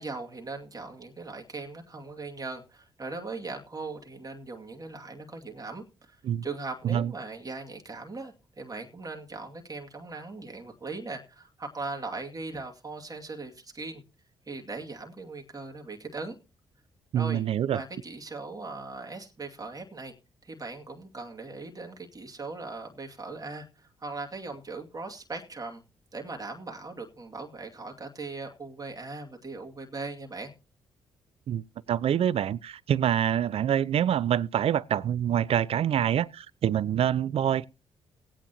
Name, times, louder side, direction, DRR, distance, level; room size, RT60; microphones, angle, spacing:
voice 1, 0.0-14.0 14.5-16.4 17.1-17.4 17.7-20.1 20.4-25.8 26.1-30.5, right 3 dB, 30° right, 2.4 m, -39 dB
voice 2, 17.1-17.8 31.5-31.6 31.9-37.7, right 10 dB, 55° right, 0.5 m, -26 dB
18.5 x 8.9 x 2.9 m
hypercardioid pair, 40°, 12 cm